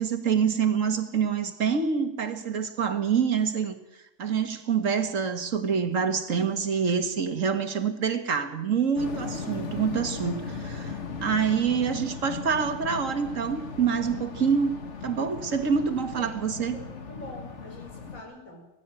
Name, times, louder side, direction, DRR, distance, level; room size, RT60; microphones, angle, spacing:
voice 1, 0.0-3.8 4.2-16.8, right 6 dB, 70° right, 8 dB, 2.1 m, -26 dB
sound 1, 9.0-18.2, left 5 dB, 60° left, 1.9 m, -37 dB
voice 2, 15.9-16.4 16.7-18.7, left 1 dB, 85° left, 0 dB, 5.5 m, -45 dB
20.0 x 15.5 x 9.0 m, 0.92 s
omnidirectional pair, 1.4 m